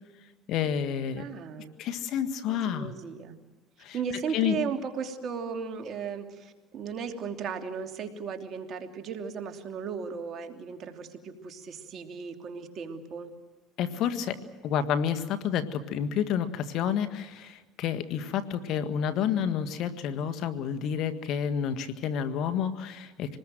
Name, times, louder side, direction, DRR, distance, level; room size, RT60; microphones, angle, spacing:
voice 1, 0.5-1.2 1.8-2.9 3.8-4.0 4.3-4.6 13.8-23.4, left 8 dB, 65° left, 10 dB, 1.7 m, -29 dB
voice 2, 1.1-1.7 2.5-3.3 3.9-13.3, right 6 dB, 50° right, 5 dB, 3.0 m, -36 dB
26.0 x 20.0 x 7.8 m, 1.3 s
supercardioid pair, 90°, 0 cm